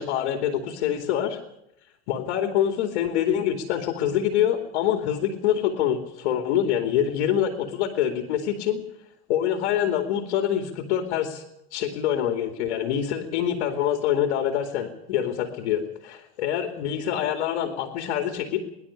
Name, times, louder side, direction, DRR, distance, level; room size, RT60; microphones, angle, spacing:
voice 1, 0.0-1.4 2.1-8.8 9.3-11.4 11.7-18.6, left 10 dB, 75° left, 6 dB, 2.7 m, -25 dB
24.0 x 11.5 x 10.0 m, 0.84 s
supercardioid pair, 115°, 33 cm